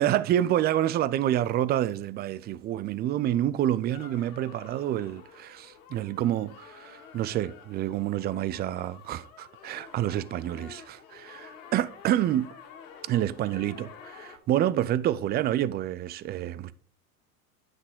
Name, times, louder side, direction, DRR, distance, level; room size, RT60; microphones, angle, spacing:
voice 1, 0.0-12.5 13.1-16.7, right 12 dB, 25° right, 0.3 m, -28 dB
sound 1, 3.9-14.4, left 7 dB, 65° left, 2.0 m, -50 dB
9.5 x 6.2 x 3.6 m
hypercardioid pair, 80°, 44 cm